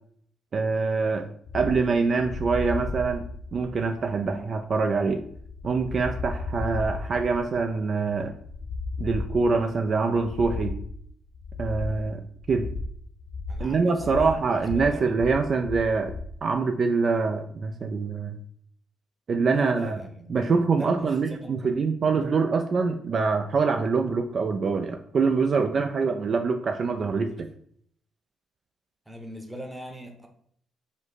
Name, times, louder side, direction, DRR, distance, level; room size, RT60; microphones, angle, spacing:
voice 1, 0.5-1.3 1.5-3.2 3.5-5.2 5.6-8.3 9.0-10.8 11.6-12.2 12.5-12.7 13.6-16.1 16.4-18.4 19.3-20.0 20.3-27.3, right 4 dB, 50° right, 5 dB, 0.3 m, -25 dB
sound 1, 1.5-16.4, left 3 dB, 70° left, 0.4 m, -35 dB
voice 2, 13.5-15.0 19.5-21.8 29.1-30.3, equal, 10° right, 3 dB, 0.8 m, -41 dB
5.0 x 2.0 x 4.0 m, 0.64 s
cardioid pair, 90°, 0 cm